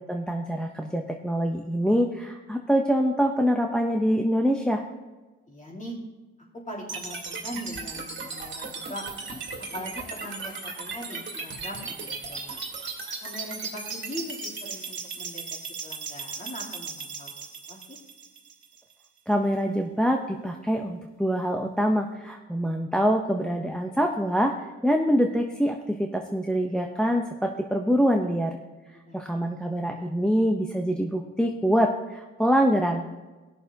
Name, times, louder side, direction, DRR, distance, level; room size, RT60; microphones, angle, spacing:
voice 1, 0.0-4.8 19.3-28.6 29.1-33.3, equal, 5° left, 2 dB, 0.7 m, -25 dB
voice 2, 5.5-6.0 6.7-9.0 9.7-12.6 13.2-15.4 15.8-17.4 17.7-18.0 28.9-29.3 29.6-29.8, equal, 25° left, -4 dB, 3.1 m, -40 dB
sound 1, 6.9-18.9, right 4 dB, 40° right, 2.2 m, -37 dB
19.5 x 6.6 x 2.8 m, 1.2 s
cardioid pair, 90°, 30 cm